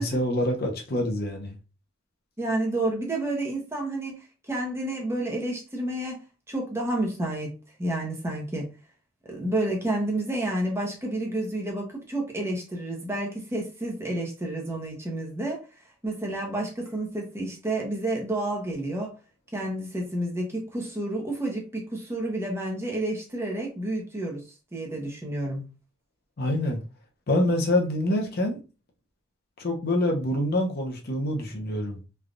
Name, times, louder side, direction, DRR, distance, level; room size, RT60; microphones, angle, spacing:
voice 1, 0.0-1.6 26.4-26.8 27.3-28.6 29.6-32.0, left 1 dB, 50° left, 0.7 m, -26 dB
voice 2, 2.4-6.2 6.5-7.5 7.8-8.7 9.3-15.6 16.0-19.2 19.5-24.4 24.7-25.7, right 1 dB, 15° right, 0.7 m, -30 dB
3.3 x 2.3 x 2.5 m
head